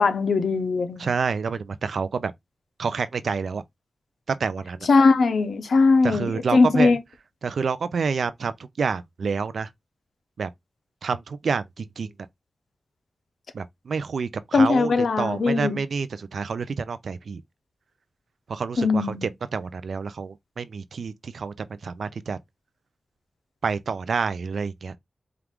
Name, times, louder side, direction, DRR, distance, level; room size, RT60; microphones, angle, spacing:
voice 1, 0.0-1.1 4.9-7.0 14.5-15.8 18.8-19.3, left 4 dB, 80° left, 0.7 m, -20 dB
voice 2, 1.0-2.3 2.8-3.6 4.3-4.9 6.0-7.0 7.4-9.7 10.4-10.5 11.0-12.1 13.5-17.4 18.5-22.4 23.6-25.0, right 5 dB, 80° right, 0.4 m, -28 dB
4.5 x 2.4 x 3.5 m
wide cardioid pair, 125°, 0 cm